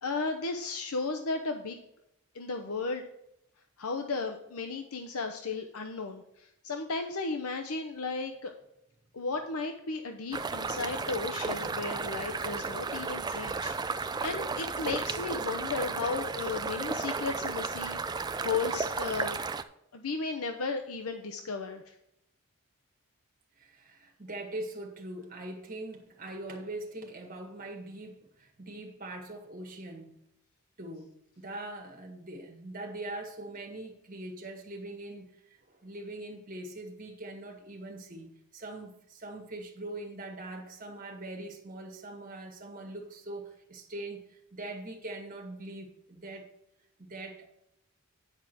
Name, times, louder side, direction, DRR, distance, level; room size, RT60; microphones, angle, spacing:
voice 1, 0.0-1.8 2.3-3.0 3.8-8.5 9.1-19.4 19.9-21.9, left 4 dB, 75° left, 5 dB, 0.8 m, -35 dB
sound 1, 10.3-19.6, right 4 dB, 20° right, 0.4 m, -34 dB
voice 2, 23.6-30.2 30.8-35.3 35.7-46.5 47.0-47.5, right 2 dB, 40° right, 1 dB, 1.8 m, -42 dB
9.9 x 4.9 x 6.1 m, 0.80 s
head